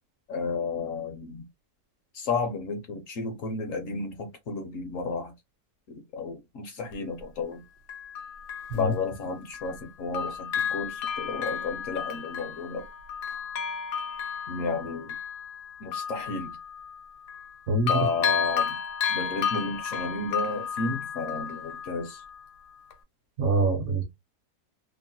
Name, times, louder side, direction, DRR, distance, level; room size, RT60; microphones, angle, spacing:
voice 1, 0.3-1.5 2.1-5.3 5.9-7.6 8.8-12.9 14.5-15.2 15.8-16.6 17.9-18.8 19.1-22.2, left 4 dB, 65° left, 0.9 m, -32 dB
Bell, 6.9-7.0 7.9-9.9 10.1-17.6 17.9-22.5 22.9-23.0, left 7 dB, 85° left, 1.1 m, -33 dB
voice 2, 23.4-24.0, right 2 dB, 60° right, 0.9 m, -24 dB
2.9 x 2.0 x 2.6 m
omnidirectional pair, 1.7 m